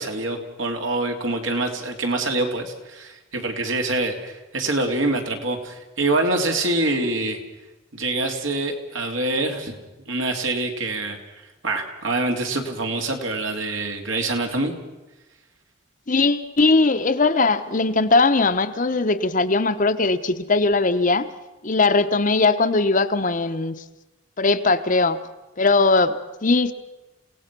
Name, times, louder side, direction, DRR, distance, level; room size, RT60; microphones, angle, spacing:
voice 1, 0.0-7.4 7.9-9.8 10.1-11.2 11.6-14.7, right 2 dB, 70° right, 3 dB, 2.9 m, -25 dB
voice 2, 16.1-21.3 21.6-23.7 24.4-25.2 25.6-26.7, left 3 dB, 40° left, 9 dB, 0.9 m, -19 dB
29.0 x 17.0 x 6.1 m, 1.1 s
head